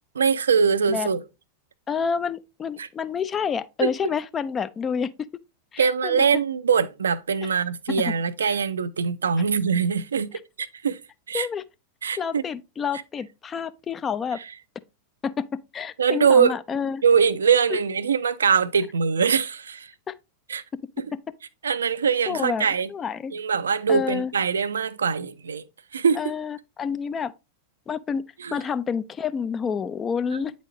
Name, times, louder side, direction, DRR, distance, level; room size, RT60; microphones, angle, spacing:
voice 1, 0.2-1.2 2.8-2.9 3.8-3.9 5.8-11.0 11.3-11.5 12.0-12.4 16.0-16.5 17.0-19.9 20.5-20.6 21.6-22.9 23.3-25.6 25.9-26.2 28.4-28.6 30.3-30.4, right 6 dB, 70° right, 0.4 m, -22 dB
voice 2, 1.9-5.1 5.7-6.2 8.1-8.2 8.4-8.6 11.3-11.6 12.2-14.4 15.2-15.4 15.7-17.0 17.7-17.8 20.1-20.2 22.3-23.3 23.9-24.3 26.2-27.3 27.9-28.2 28.5-30.5, left 6 dB, 20° left, 0.4 m, -28 dB
8.7 x 4.1 x 3.0 m
figure-of-eight pair, 90°, 0 cm